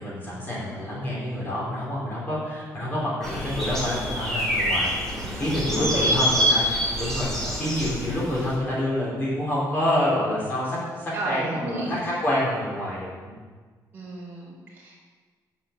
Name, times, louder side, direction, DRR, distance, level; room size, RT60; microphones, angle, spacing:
voice 1, 0.0-6.6 7.0-13.4, left 1 dB, 30° left, -6 dB, 4.4 m, -27 dB
sound 1, 3.2-8.5, equal, 5° left, 3.1 m, -26 dB
voice 2, 5.1-5.5 5.7-6.1 11.1-12.0 13.9-15.0, right 2 dB, 25° right, -4 dB, 4.5 m, -33 dB
9.8 x 8.6 x 8.1 m, 1.5 s
cardioid pair, 180°, 7 cm